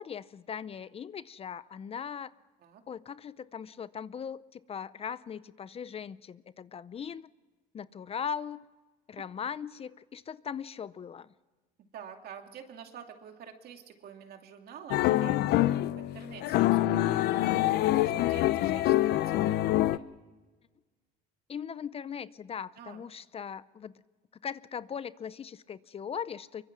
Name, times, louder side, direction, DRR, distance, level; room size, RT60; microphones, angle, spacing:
voice 1, 0.0-2.3 2.9-7.3 7.7-8.6 9.1-11.3 21.5-24.0 24.4-26.6, left 7 dB, 35° left, 17 dB, 0.6 m, -39 dB
voice 2, 11.9-19.6 19.9-20.1 22.8-23.1, right 8 dB, 65° right, 4 dB, 2.6 m, -48 dB
sound 1, 14.9-20.0, left 15 dB, 75° left, 0.7 m, -25 dB
24.0 x 23.5 x 6.1 m, 1.3 s
cardioid pair, 110°, 17 cm